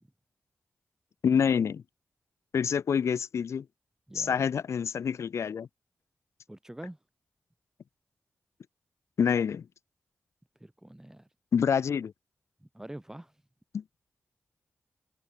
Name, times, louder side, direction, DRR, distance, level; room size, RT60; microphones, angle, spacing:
voice 1, 1.2-1.8 2.5-3.7 4.1-5.7 9.2-9.7 11.5-12.1 13.7-13.8, left 7 dB, 80° left, 0.7 m, -27 dB
voice 2, 4.1-4.5 6.5-7.0 10.6-11.3 12.6-13.3, right 1 dB, 10° right, 1.9 m, -45 dB
cardioid pair, 70°, 5 cm